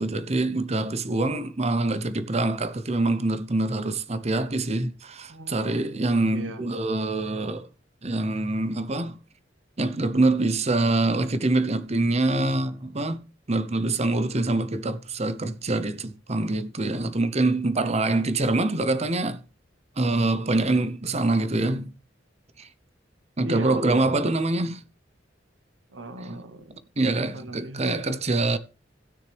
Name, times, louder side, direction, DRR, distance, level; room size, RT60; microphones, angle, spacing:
voice 1, 0.0-7.7 8.0-9.2 9.8-13.2 13.5-19.4 20.0-21.9 22.6-22.7 23.4-24.8 26.2-26.4 27.0-28.6, right 2 dB, 35° right, 0.8 m, -25 dB
voice 2, 5.3-5.9 6.3-6.6 23.4-23.8 25.9-26.8 27.3-28.1, right 1 dB, 85° right, 1.2 m, -38 dB
16.5 x 6.5 x 3.4 m
head